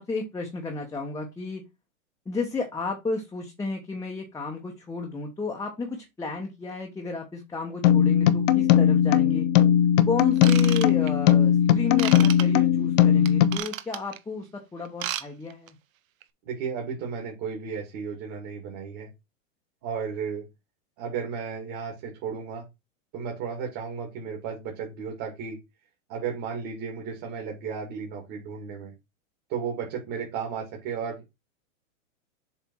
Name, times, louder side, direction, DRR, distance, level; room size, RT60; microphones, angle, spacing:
voice 1, 0.0-1.6 2.3-9.5 10.1-15.8, left 3 dB, 10° left, 0 dB, 1.0 m, -33 dB
sound 1, 7.8-13.6, left 10 dB, 65° left, 0.9 m, -19 dB
Ratchet pawl / Tools, 10.4-11.3 12.0-12.4 13.2-14.2 14.8-15.2 15.5-15.7 16.2-16.3, right 12 dB, 75° right, 0.9 m, -32 dB
voice 2, 16.5-19.1 19.8-20.5 21.0-22.6 23.1-25.6 26.1-28.9 29.5-31.2, right 6 dB, 40° right, 0 dB, 2.5 m, -34 dB
7.2 x 3.3 x 4.6 m, 0.23 s
hypercardioid pair, 130°, 41 cm